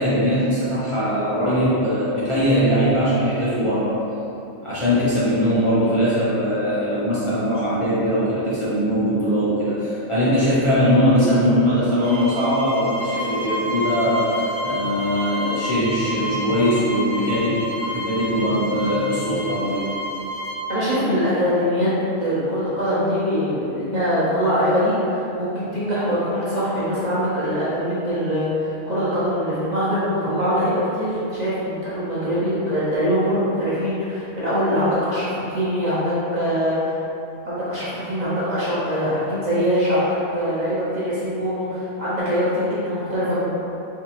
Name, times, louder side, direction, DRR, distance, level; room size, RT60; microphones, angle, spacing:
voice 1, 0.0-4.0 4.6-19.9, equal, 45° left, -11 dB, 0.4 m, -21 dB
sound 1, 12.0-20.6, equal, 85° left, 1.5 m, -29 dB
voice 2, 20.7-21.9 22.2-37.0 37.4-43.5, equal, 45° right, -10 dB, 0.6 m, -23 dB
3.5 x 2.9 x 2.8 m, 2.8 s
omnidirectional pair, 1.4 m